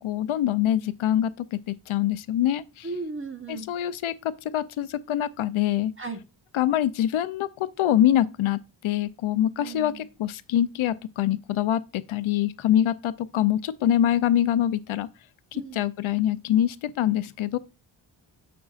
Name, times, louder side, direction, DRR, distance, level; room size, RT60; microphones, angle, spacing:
voice 1, 0.0-2.9 3.5-5.9 6.5-15.1 15.5-17.6, left 11 dB, 75° left, 0.6 m, -25 dB
voice 2, 2.8-3.7 6.0-6.2 9.6-10.1 15.5-15.8, right 3 dB, 25° right, 1.0 m, -35 dB
7.3 x 6.0 x 2.4 m
wide cardioid pair, 110°, 49 cm